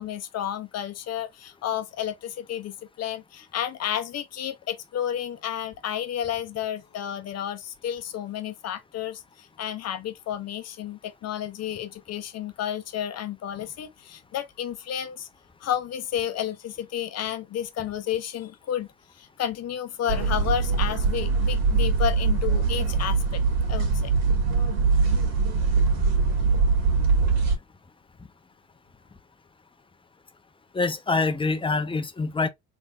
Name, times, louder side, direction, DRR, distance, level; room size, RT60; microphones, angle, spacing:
voice 1, 0.0-15.3 15.6-18.9 19.2-23.4 23.7-24.1, left 10 dB, 60° left, 0.9 m, -31 dB
sound 1, 20.1-27.6, right 4 dB, 60° right, 2.0 m, -22 dB
voice 2, 30.7-32.5, left 3 dB, 15° left, 0.8 m, -25 dB
3.6 x 3.4 x 2.5 m
supercardioid pair, 70°, 29 cm